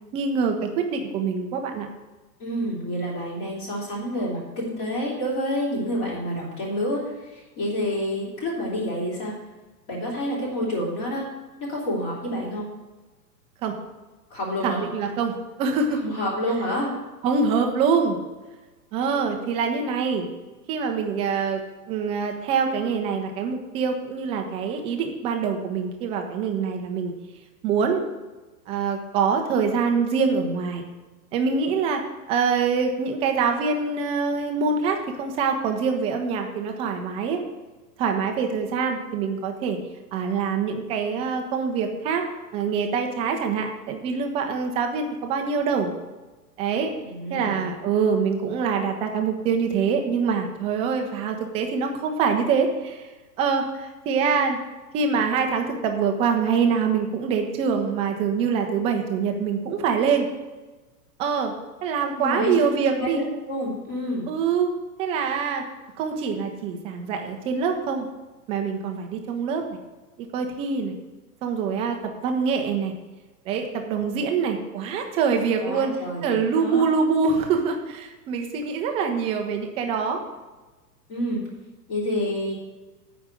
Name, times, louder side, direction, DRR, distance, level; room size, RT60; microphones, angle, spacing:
voice 1, 0.1-1.9 13.6-13.7 14.6-16.0 17.2-18.2 18.9-20.3 20.7-21.6 21.9-27.1 27.6-28.0 28.7-30.9 31.3-32.0 32.3-37.4 38.0-39.8 40.1-42.2 42.5-45.9 46.6-46.9 47.3-53.1 53.4-54.6 54.9-60.3 61.2-61.5 61.8-63.2 64.3-64.7 65.0-65.6 66.0-68.1 68.5-69.6 70.2-70.9 71.4-72.9 73.5-75.9 76.2-80.2, right 5 dB, 10° right, 4 dB, 0.5 m, -24 dB
voice 2, 2.4-9.3 9.9-11.3 11.6-12.7 14.3-14.8 16.0-16.9 47.0-47.6 62.2-62.6 62.9-64.3 75.6-76.8 81.1-81.4 81.9-82.5, equal, 35° left, -5 dB, 3.4 m, -28 dB
8.9 x 5.2 x 7.5 m, 1.2 s
figure-of-eight pair, 105°, 49 cm